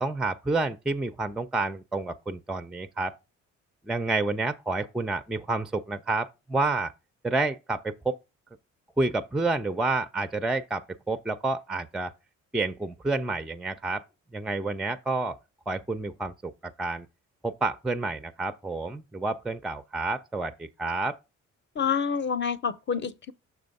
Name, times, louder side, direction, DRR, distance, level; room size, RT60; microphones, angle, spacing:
voice 1, 0.0-3.1 3.9-6.9 7.2-8.2 9.0-12.1 12.5-14.0 14.3-15.4 15.7-17.1 17.4-21.2, right 3 dB, ahead, 0.4 m, -29 dB
voice 2, 21.8-23.3, left 6 dB, 35° left, 0.7 m, -28 dB
6.2 x 3.4 x 5.2 m
cardioid pair, 90°, 30 cm